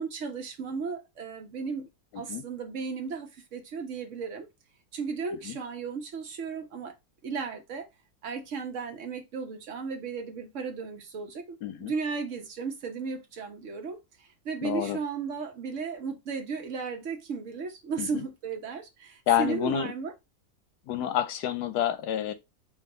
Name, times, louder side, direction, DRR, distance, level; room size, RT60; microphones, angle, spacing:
voice 1, 0.0-1.9 2.1-4.5 4.9-6.9 7.2-7.9 8.2-20.1, right 5 dB, 55° right, 1.2 m, -35 dB
voice 2, 2.1-2.5 5.4-5.6 11.6-11.9 14.6-15.0 18.0-18.2 19.3-19.9 20.9-22.3, left 11 dB, 85° left, 1.2 m, -28 dB
4.9 x 2.8 x 3.8 m
omnidirectional pair, 1.7 m